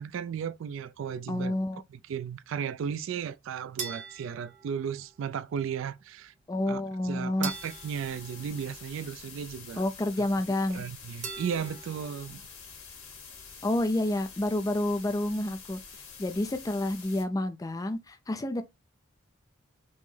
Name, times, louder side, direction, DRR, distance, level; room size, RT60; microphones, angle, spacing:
voice 1, 0.0-1.6 1.9-6.3 6.7-9.8 10.2-10.3 10.7-12.4, right 7 dB, 65° right, 0.3 m, -35 dB
voice 2, 1.3-1.8 6.5-7.5 9.8-10.8 13.6-15.8 16.2-18.6, left 1 dB, 15° left, 0.3 m, -29 dB
sound 1, 3.8-5.3 7.4-9.3 11.2-12.4, right 5 dB, 35° right, 0.9 m, -42 dB
sound 2, 7.5-17.2, left 6 dB, 80° left, 1.8 m, -47 dB
5.3 x 2.0 x 3.2 m
head